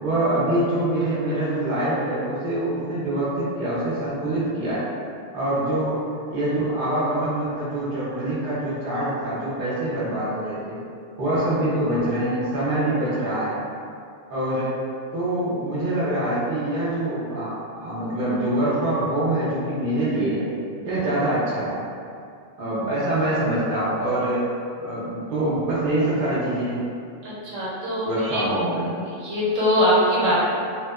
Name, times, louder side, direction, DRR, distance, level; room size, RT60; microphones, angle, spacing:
voice 1, 0.0-4.9 5.3-6.0 6.3-10.8 11.2-13.6 14.3-14.8 15.1-20.5 20.8-21.8 22.6-24.5 24.8-26.8 28.0-28.9, right 1 dB, 50° right, -9 dB, 0.8 m, -24 dB
voice 2, 27.2-28.5 29.2-30.4, equal, 85° right, -8 dB, 1.1 m, -22 dB
2.8 x 2.1 x 2.3 m, 2.4 s
omnidirectional pair, 1.3 m